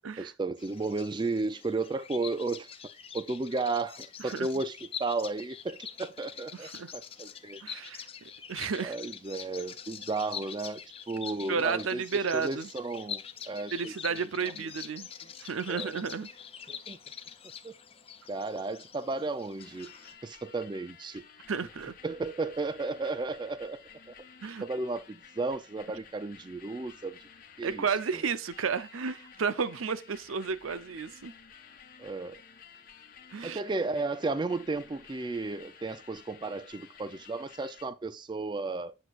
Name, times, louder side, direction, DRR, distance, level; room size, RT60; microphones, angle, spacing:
voice 1, 0.2-2.7 3.1-7.6 8.8-13.9 14.4-14.7 15.7-16.0 16.7-17.0 17.6-17.7 18.3-19.9 20.2-21.2 22.0-23.8 24.6-27.2 27.6-27.8 28.1-28.2 32.0-32.4 33.4-39.0, right 3 dB, 20° right, 0.3 m, -34 dB
Bird vocalization bird call bird song, 0.6-20.1, left 8 dB, 30° left, 0.6 m, -45 dB
voice 2, 6.6-6.9 7.6-8.0 8.5-8.9 11.5-12.7 13.7-15.1 15.4-16.3 21.5-21.9 24.4-24.6 27.6-31.3 33.3-33.6, right 5 dB, 90° right, 0.6 m, -32 dB
sound 1, 19.6-37.8, left 7 dB, 45° left, 1.0 m, -53 dB
7.9 x 6.2 x 2.4 m
head